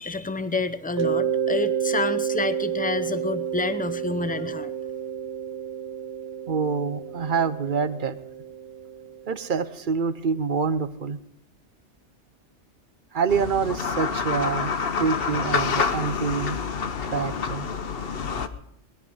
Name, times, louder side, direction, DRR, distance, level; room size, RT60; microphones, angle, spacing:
voice 1, 0.0-4.7, left 3 dB, 10° left, 12 dB, 0.5 m, -28 dB
Mallet percussion, 1.0-9.6, right 8 dB, 75° right, 1.1 m, -30 dB
voice 2, 6.5-8.2 9.3-11.2 13.1-14.7 15.0-16.6 17.1-17.7, right 5 dB, 50° right, 13 dB, 0.9 m, -26 dB
sound 1, 13.3-18.5, left 5 dB, 55° left, 1.0 m, -27 dB
20.0 x 11.5 x 5.5 m, 0.75 s
omnidirectional pair, 1.2 m